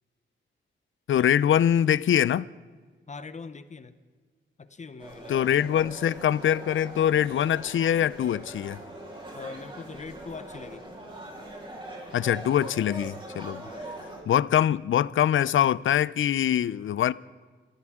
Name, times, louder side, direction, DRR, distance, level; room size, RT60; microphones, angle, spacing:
voice 1, 1.1-2.5 5.3-8.8 12.1-13.7 14.3-17.1, left 10 dB, 85° left, 0.5 m, -23 dB
voice 2, 3.1-4.0 4.6-5.9 9.3-10.8 13.6-13.9, left 4 dB, 35° left, 0.8 m, -42 dB
sound 1, 5.0-14.2, right 1 dB, 25° right, 3.5 m, -42 dB
25.0 x 15.5 x 3.7 m
wide cardioid pair, 160°, 20 cm